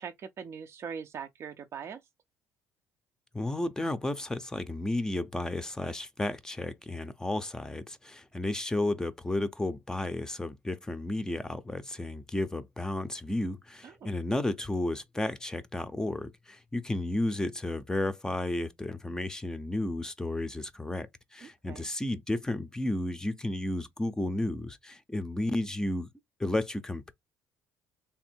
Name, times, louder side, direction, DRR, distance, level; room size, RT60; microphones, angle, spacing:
voice 1, 0.0-2.0 13.8-14.1 21.4-21.9, right 7 dB, 45° right, 0.4 m, -41 dB
voice 2, 3.3-26.1 26.4-27.1, left 1 dB, 10° left, 0.5 m, -33 dB
3.5 x 2.6 x 4.4 m
supercardioid pair, 90°, 6 cm